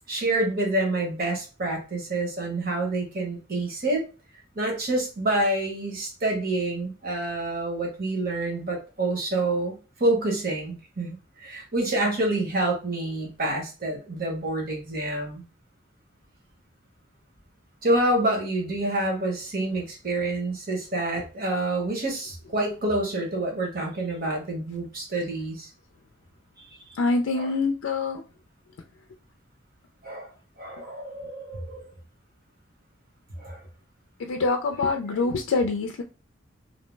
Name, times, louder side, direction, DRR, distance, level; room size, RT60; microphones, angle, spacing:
voice 1, 0.1-4.0 4.5-15.4 17.8-25.7 27.3-27.5 30.0-30.3 30.6-31.8 33.4-33.6 35.1-35.2, right 2 dB, 50° right, 0 dB, 1.1 m, -27 dB
voice 2, 27.0-28.2 34.2-36.0, left 3 dB, 85° left, 4 dB, 0.4 m, -25 dB
2.7 x 2.0 x 3.2 m, 0.34 s
head